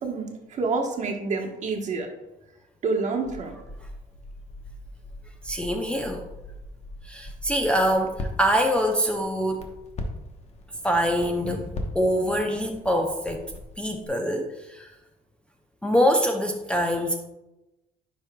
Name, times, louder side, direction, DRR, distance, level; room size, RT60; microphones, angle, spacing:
voice 1, 0.0-2.1 2.8-3.6, right 4 dB, 45° right, 1 dB, 1.1 m, -28 dB
Crackle, 3.2-14.1, left 1 dB, 40° left, 1.0 m, -40 dB
voice 2, 5.4-6.3 7.0-9.6 10.8-13.4 13.8-14.9 15.8-17.1, equal, 5° left, 1 dB, 0.5 m, -24 dB
10.0 x 4.7 x 2.3 m, 0.98 s
cardioid pair, 110°, 17 cm